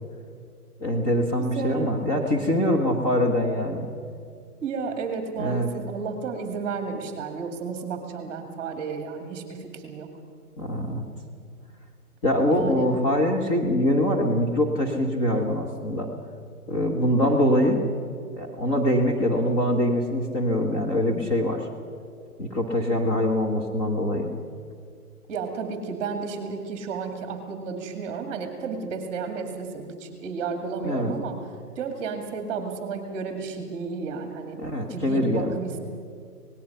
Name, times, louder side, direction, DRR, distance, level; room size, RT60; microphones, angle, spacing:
voice 1, 0.8-3.9 5.4-5.7 10.6-11.1 12.2-16.1 16.7-17.8 18.3-21.7 22.4-24.3 30.8-31.1 34.6-35.5, left 1 dB, 20° left, 0 dB, 1.5 m, -23 dB
voice 2, 1.6-1.9 4.6-10.1 12.5-12.9 25.3-31.4 31.8-34.6 34.9-35.8, right 5 dB, 20° right, 5 dB, 2.1 m, -32 dB
26.0 x 19.0 x 5.7 m, 2.3 s
hypercardioid pair, 155°, 46 cm